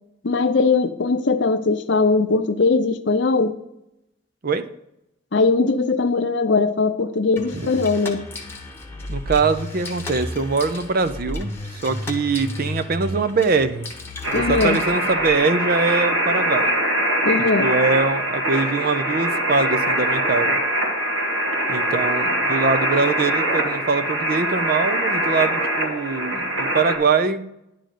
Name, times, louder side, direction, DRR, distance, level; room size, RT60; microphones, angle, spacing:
voice 1, 0.2-3.5 5.3-8.2 14.3-14.8 17.2-17.7, left 3 dB, 60° left, 9 dB, 0.6 m, -20 dB
sound 1, 7.4-15.4, left 1 dB, 10° left, 1.0 m, -33 dB
voice 2, 9.1-13.9 14.3-16.7 17.6-20.6 21.7-27.4, right 4 dB, 45° right, 11 dB, 0.5 m, -23 dB
sound 2, 14.2-27.0, right 1 dB, 85° right, 2.2 m, -23 dB
10.5 x 3.9 x 6.5 m, 0.84 s
head